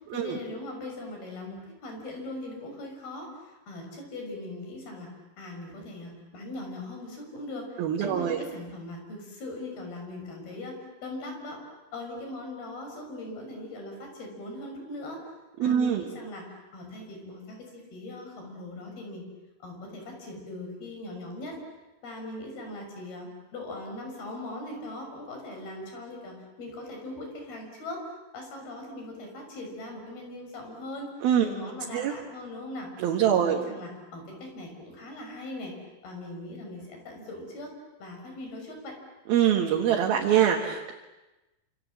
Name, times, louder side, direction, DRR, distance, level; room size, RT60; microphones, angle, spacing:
voice 1, 0.1-5.1 5.4-10.8 11.0-11.6 11.9-15.3 15.6-19.3 19.6-21.6 22.0-31.1 31.4-32.9 33.3-35.8 36.0-37.7 38.0-39.0, left 2 dB, 80° left, 2 dB, 7.8 m, -40 dB
voice 2, 7.8-8.4 15.6-16.1 31.2-31.5 31.9-32.1 33.0-33.6 39.3-40.9, right 9 dB, 75° right, 1 dB, 3.5 m, -24 dB
27.5 x 27.0 x 7.6 m, 1.1 s
omnidirectional pair, 4.3 m